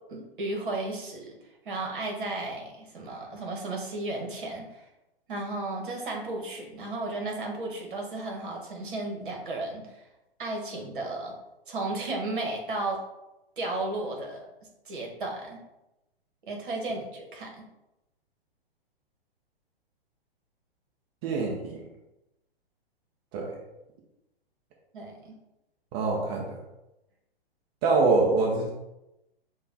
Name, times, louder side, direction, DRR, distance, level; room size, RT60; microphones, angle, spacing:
voice 1, 0.1-1.3 1.6-4.8 5.3-10.0 10.4-11.3 11.7-13.0 13.6-14.4 14.8-15.6 16.5-17.6 24.9-25.3, right 2 dB, 55° right, 1 dB, 1.4 m, -34 dB
voice 2, 21.2-21.8 23.3-23.5 25.9-26.6 27.8-28.7, right 3 dB, 25° right, -1 dB, 0.6 m, -25 dB
5.5 x 2.4 x 4.0 m, 0.94 s
figure-of-eight pair, 115°, 30 cm